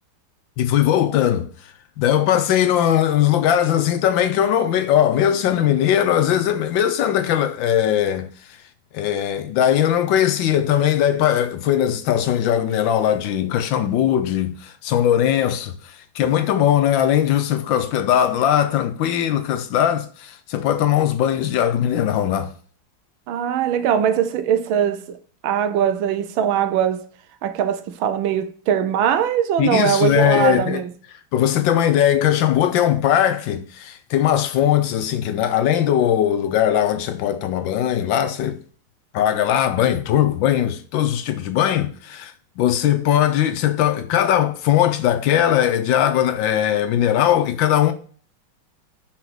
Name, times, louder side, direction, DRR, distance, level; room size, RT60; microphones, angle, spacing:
voice 1, 0.6-1.5 2.0-8.3 8.9-22.5 29.6-30.8 31.3-38.6 39.1-47.9, left 10 dB, 75° left, 1.3 m, -19 dB
voice 2, 23.3-25.2 25.4-27.1 27.4-30.9, right 9 dB, 80° right, 1.4 m, -21 dB
5.7 x 4.0 x 4.7 m
omnidirectional pair, 2.2 m